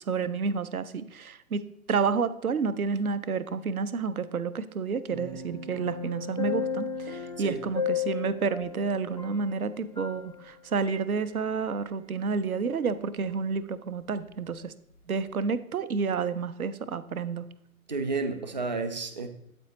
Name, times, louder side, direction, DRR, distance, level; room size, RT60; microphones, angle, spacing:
voice 1, 0.1-14.7 15.1-17.5, right 5 dB, 75° right, 0.6 m, -30 dB
sound 1, 5.1-10.5 10.9-11.0, left 6 dB, 30° left, 0.4 m, -34 dB
voice 2, 17.9-19.3, right 3 dB, 30° right, 0.5 m, -31 dB
8.3 x 4.4 x 4.0 m
figure-of-eight pair, 130°, 44 cm